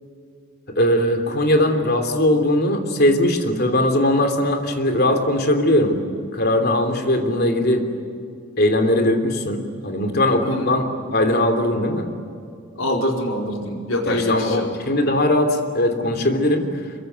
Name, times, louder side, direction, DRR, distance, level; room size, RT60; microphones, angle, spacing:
voice 1, 0.7-6.0 6.3-7.8 8.6-12.1 14.0-16.6, left 1 dB, 50° left, 5 dB, 3.2 m, -20 dB
voice 2, 12.8-14.7 16.0-16.1, left 1 dB, 75° left, 1 dB, 4.6 m, -25 dB
26.5 x 23.0 x 9.5 m, 2.4 s
head